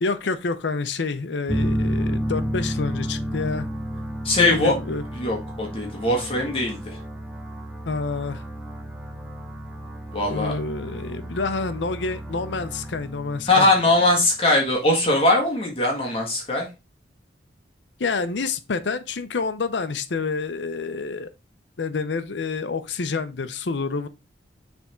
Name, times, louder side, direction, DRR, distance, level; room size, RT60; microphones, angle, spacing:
voice 1, 0.0-3.7 4.4-5.0 7.9-8.4 10.3-13.7 18.0-21.3 21.8-24.1, left 4 dB, 80° left, 0.6 m, -28 dB
sound 1, 1.5-14.1, equal, 5° right, 0.9 m, -31 dB
voice 2, 4.2-4.7 5.1-7.0 10.1-10.5 13.5-16.7, left 2 dB, 30° left, 1.6 m, -21 dB
6.9 x 3.5 x 4.3 m
head